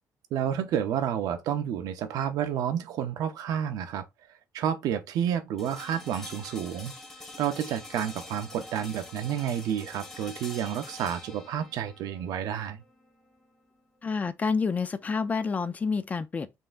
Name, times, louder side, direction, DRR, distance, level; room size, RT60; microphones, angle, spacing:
voice 1, 0.3-4.1 4.5-6.9 7.4-12.8, right 9 dB, 80° right, 0.6 m, -30 dB
sound 1, 5.6-15.5, left 2 dB, 10° left, 1.4 m, -46 dB
voice 2, 14.0-16.6, left 5 dB, 25° left, 0.4 m, -28 dB
5.4 x 3.4 x 2.5 m
cardioid pair, 155°, 6 cm